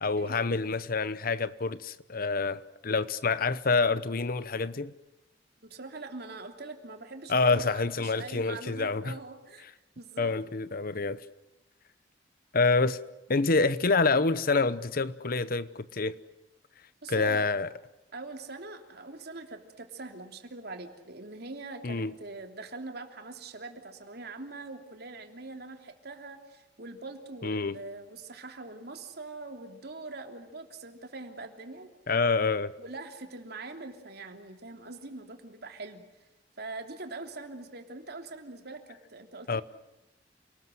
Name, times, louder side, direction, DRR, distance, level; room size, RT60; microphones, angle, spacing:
voice 1, 0.0-4.9 7.3-9.1 10.2-11.2 12.5-13.0 13.3-16.2 17.1-17.7 21.8-22.1 27.4-27.8 32.1-32.7 39.5-39.6, left 3 dB, 55° left, 0.9 m, -27 dB
voice 2, 5.6-9.6 10.0-10.3 17.0-17.5 18.1-31.9 32.8-36.0 36.6-39.6, right 3 dB, 60° right, 3.2 m, -43 dB
28.5 x 20.0 x 7.8 m
head